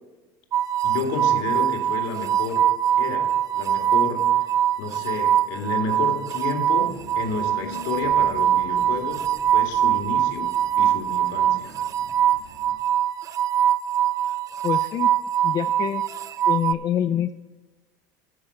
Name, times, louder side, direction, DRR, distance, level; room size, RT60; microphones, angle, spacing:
sound 1, 0.5-16.7, right 10 dB, 40° right, 0.4 m, -23 dB
voice 1, 0.8-4.5 4.8-11.7, left 5 dB, 75° left, 4 dB, 2.0 m, -31 dB
sound 2, 6.7-12.7, right 1 dB, 85° right, 2.9 m, -46 dB
voice 2, 14.6-15.1 15.4-16.0 16.5-17.3, left 10 dB, 40° left, 8 dB, 0.5 m, -25 dB
12.5 x 4.6 x 7.7 m, 1.2 s
supercardioid pair, 110°, 9 cm